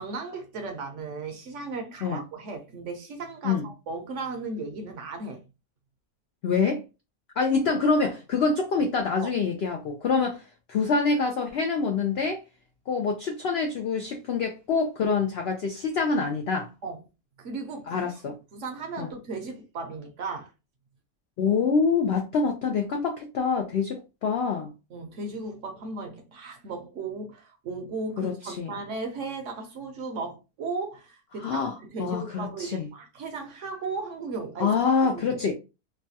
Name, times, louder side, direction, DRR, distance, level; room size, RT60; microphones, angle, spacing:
voice 1, 0.0-5.4 9.2-9.3 16.8-17.0 17.4-20.5 24.9-34.7 35.1-35.4, right 3 dB, 65° right, 0.8 m, -36 dB
voice 2, 6.4-6.8 7.4-10.4 10.7-12.4 12.9-16.7 17.9-18.4 19.0-19.1 21.4-24.7 28.2-28.7 31.4-31.7 32.0-32.9 34.6-35.5, left 5 dB, 80° left, 0.5 m, -26 dB
3.2 x 2.2 x 2.6 m
omnidirectional pair, 1.6 m